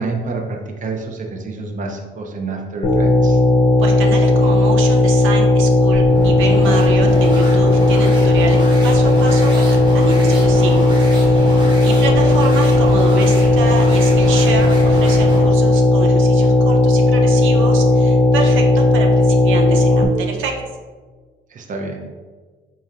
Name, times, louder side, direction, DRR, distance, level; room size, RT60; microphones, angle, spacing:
voice 1, 0.0-3.4 11.8-12.1 21.5-22.0, right 3 dB, 40° right, 2 dB, 0.5 m, -28 dB
sound 1, 2.8-20.0, left 2 dB, 50° left, 0.6 m, -14 dB
voice 2, 3.8-10.8 11.3-20.5, right 4 dB, 85° right, 1 dB, 0.5 m, -27 dB
sound 2, 5.9-15.6, equal, 20° right, 1.1 m, -27 dB
4.2 x 3.1 x 2.4 m, 1.4 s
cardioid pair, 90°, 20 cm